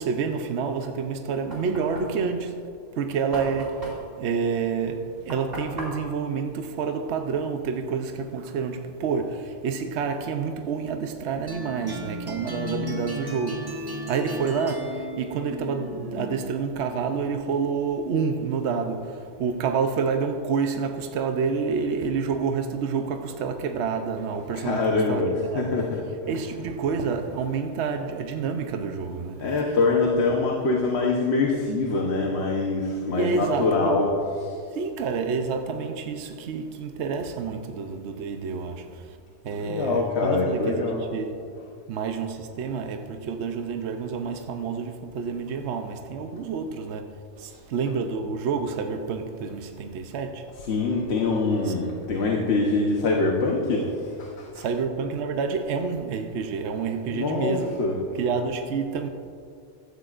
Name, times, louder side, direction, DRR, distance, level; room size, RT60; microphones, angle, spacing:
voice 1, 0.0-2.7 3.0-25.7 26.3-29.8 30.1-30.3 33.1-34.0 34.7-39.2 39.4-41.5 41.9-50.5 51.6-51.7 54.6-57.8 58.2-59.1, right 5 dB, 70° right, 1.0 m, -28 dB
Knock, 1.5-7.4, equal, 50° right, 2.7 m, -41 dB
sound 1, 11.5-16.6, equal, 20° right, 1.0 m, -35 dB
voice 2, 24.5-25.3 25.5-26.0 29.4-34.1 34.4-34.6 39.6-41.0 50.7-54.6 57.1-57.9, left 3 dB, 65° left, 1.2 m, -24 dB
15.5 x 13.0 x 2.5 m
omnidirectional pair, 1.2 m